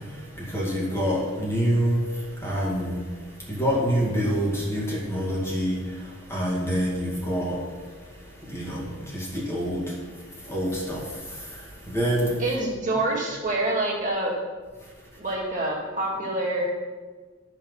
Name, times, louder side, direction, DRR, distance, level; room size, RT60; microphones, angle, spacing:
voice 1, 0.5-2.0 2.4-2.9 3.5-5.8 6.3-7.5 8.5-8.8 9.1-9.8 10.5-11.0 11.9-12.3, equal, 15° left, -5 dB, 2.1 m, -25 dB
voice 2, 12.4-14.4 15.2-16.7, right 1 dB, 40° right, -3 dB, 2.3 m, -26 dB
12.0 x 6.0 x 5.5 m, 1.4 s
head